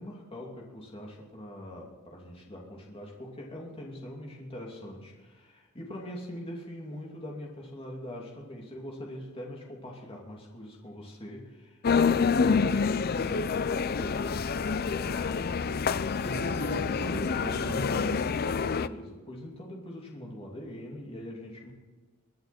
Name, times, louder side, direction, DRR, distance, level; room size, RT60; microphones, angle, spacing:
voice 1, 0.0-15.3 18.7-21.7, left 1 dB, 25° left, -2 dB, 2.8 m, -42 dB
sound 1, 11.8-18.9, left 5 dB, 45° left, 0.5 m, -27 dB
voice 2, 16.2-18.4, equal, 90° left, 0 dB, 5.8 m, -36 dB
23.0 x 10.5 x 4.4 m, 1.3 s
head